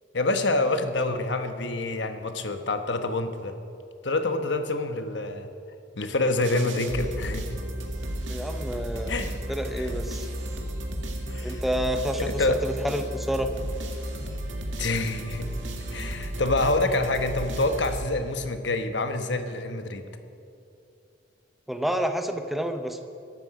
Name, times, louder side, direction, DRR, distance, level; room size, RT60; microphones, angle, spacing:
voice 1, 0.1-3.5 4.0-5.5 5.9-7.4 9.1-9.4 9.8-9.9 11.3-11.6 12.4-12.5 14.8-15.5 15.9-20.0, left 2 dB, 65° left, 7 dB, 1.2 m, -27 dB
sound 1, 6.4-18.5, right 1 dB, 80° right, 2.0 m, -33 dB
voice 2, 8.3-9.2 9.5-10.3 11.4-13.5 21.7-23.0, equal, ahead, 6 dB, 0.9 m, -29 dB
22.0 x 12.5 x 5.0 m, 2.6 s
head